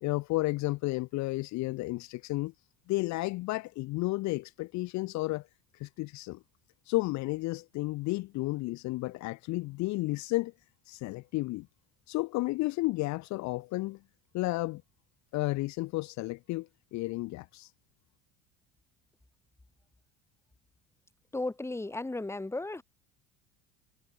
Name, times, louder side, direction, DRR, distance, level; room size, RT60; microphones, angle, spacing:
voice 1, 0.0-2.5 2.9-5.5 5.8-6.4 6.9-10.5 10.9-11.7 12.1-14.0 14.3-14.8 15.3-17.7, left 20 dB, 60° left, 0.7 m, -32 dB
voice 2, 21.3-22.8, left 2 dB, 10° left, 1.8 m, -35 dB
cardioid pair, 115°, 32 cm